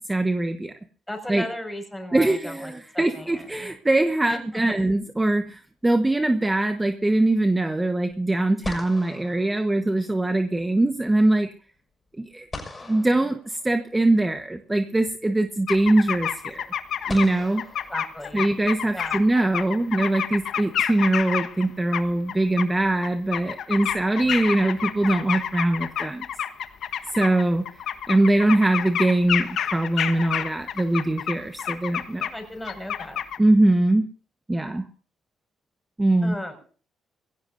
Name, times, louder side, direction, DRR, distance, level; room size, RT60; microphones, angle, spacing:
voice 1, 0.1-0.7 1.3-1.4 2.1-11.5 12.2-12.5 12.9-16.7 17.1-17.6 18.3-26.2 27.1-32.3 33.4-34.0 34.5-34.9 36.0-36.3, right 2 dB, 15° right, 7 dB, 1.2 m, -22 dB
voice 2, 1.1-3.7 4.3-4.8 17.9-18.5 18.9-19.2 32.3-33.2 36.2-36.5, left 1 dB, 10° left, 4 dB, 5.8 m, -35 dB
sound 1, 3.1-4.0 8.1-8.2 8.6-10.4 12.5-14.1 15.4-15.5 17.1-18.7, left 3 dB, 25° left, 5.8 m, -41 dB
sound 2, 15.7-17.3 17.6-21.7 21.9-22.6 23.0-32.4 32.7-33.4, left 9 dB, 70° left, 1.2 m, -28 dB
23.0 x 16.5 x 2.7 m, 0.41 s
cardioid pair, 90°, 0 cm